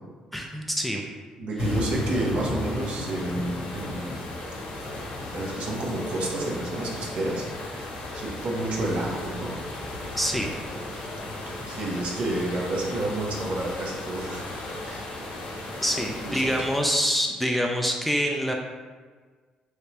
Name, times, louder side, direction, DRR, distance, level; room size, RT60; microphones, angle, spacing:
voice 1, 0.3-1.1 1.6-1.8 10.2-10.5 15.8-18.5, equal, 5° left, 1 dB, 0.3 m, -26 dB
voice 2, 1.4-4.3 5.3-7.5 8.1-9.5 11.7-15.4 16.0-16.5, right 2 dB, 60° right, -2 dB, 0.8 m, -30 dB
sound 1, 1.6-17.1, left 1 dB, 80° left, 0.7 m, -34 dB
3.3 x 2.9 x 2.9 m, 1.5 s
cardioid pair, 95°, 2 cm